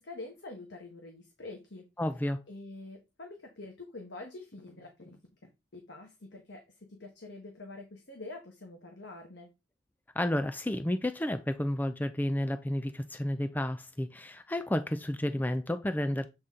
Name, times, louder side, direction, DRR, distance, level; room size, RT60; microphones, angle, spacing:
voice 1, 0.0-1.9 2.5-5.2 5.7-9.5, left 2 dB, 60° left, 1.3 m, -46 dB
voice 2, 2.0-2.4 10.2-16.3, left 1 dB, 10° left, 0.4 m, -31 dB
7.8 x 4.1 x 3.7 m
head